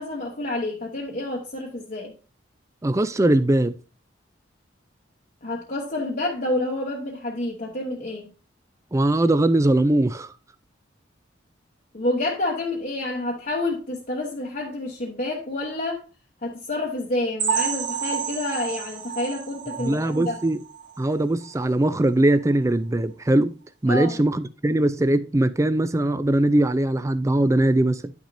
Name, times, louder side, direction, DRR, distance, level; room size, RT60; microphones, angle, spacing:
voice 1, 0.0-2.1 5.4-8.3 11.9-16.0 16.4-20.4 23.9-24.2, left 2 dB, 45° left, 1.0 m, -28 dB
voice 2, 2.8-3.7 8.9-10.3 19.8-20.6 21.0-23.5 23.8-28.1, right 1 dB, 15° right, 0.4 m, -21 dB
sound 1, 17.4-21.0 21.4-21.6 21.9-22.0 22.5-22.6, right 7 dB, 65° right, 1.3 m, -30 dB
9.9 x 6.0 x 2.6 m
head